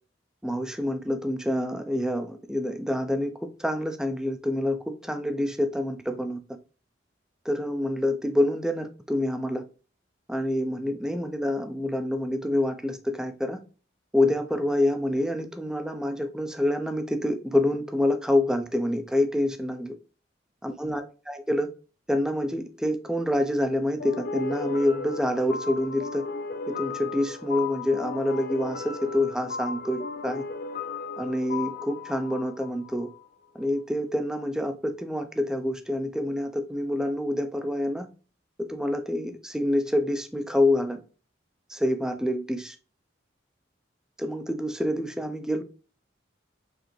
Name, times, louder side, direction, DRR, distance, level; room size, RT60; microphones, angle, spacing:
voice 1, 0.4-6.4 7.4-9.6 10.3-13.6 14.1-20.0 20.6-21.7 22.1-26.3 26.7-30.4 31.2-33.1 33.5-38.1 38.6-41.0 41.7-42.8 44.2-45.6, left 1 dB, 5° right, 0.5 m, -27 dB
sound 1, 24.0-33.3, left 4 dB, 50° left, 0.4 m, -35 dB
4.9 x 3.4 x 3.1 m
head